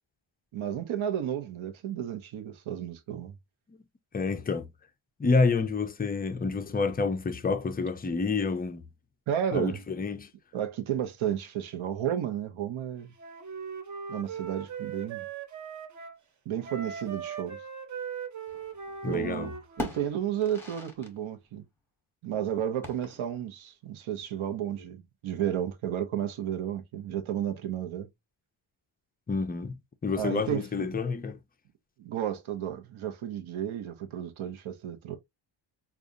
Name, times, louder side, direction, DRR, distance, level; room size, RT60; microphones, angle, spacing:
voice 1, 0.5-3.3 9.3-9.8 10.5-13.1 14.1-15.2 16.5-17.6 19.0-19.5 19.8-21.6 22.2-28.1 30.2-30.6 32.0-35.2, right 10 dB, 75° right, 0.8 m, -32 dB
voice 2, 4.1-4.7 5.2-8.9 9.5-10.3 19.0-19.5 29.3-31.4, left 4 dB, 20° left, 0.3 m, -28 dB
Wind instrument woodwind instrument, 13.2-16.2 16.6-20.1, right 6 dB, 35° right, 0.6 m, -39 dB
sound 1, 18.5-19.3 19.5-21.2 21.4-21.5 22.8-23.5, equal, 5° left, 0.9 m, -40 dB
4.8 x 2.4 x 2.6 m
wide cardioid pair, 175°, 49 cm